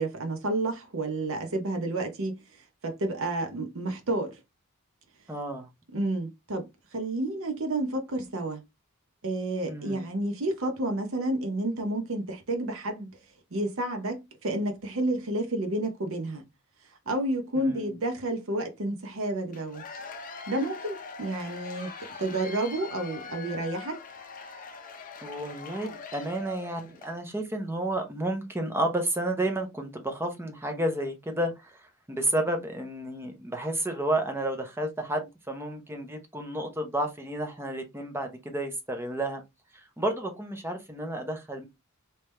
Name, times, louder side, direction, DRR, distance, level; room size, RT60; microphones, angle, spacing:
voice 1, 0.0-2.4 2.8-4.4 5.9-8.6 9.2-13.2 13.5-16.4 17.1-19.8 20.5-21.9 22.2-24.0, right 2 dB, 65° right, 0.9 m, -30 dB
voice 2, 5.3-5.7 9.7-10.1 17.6-18.0 25.2-31.8 32.1-39.4 39.7-41.7, right 1 dB, 10° right, 0.8 m, -31 dB
Cheering / Applause / Crowd, 19.5-27.2, left 4 dB, 40° left, 0.6 m, -42 dB
3.4 x 2.9 x 3.2 m
head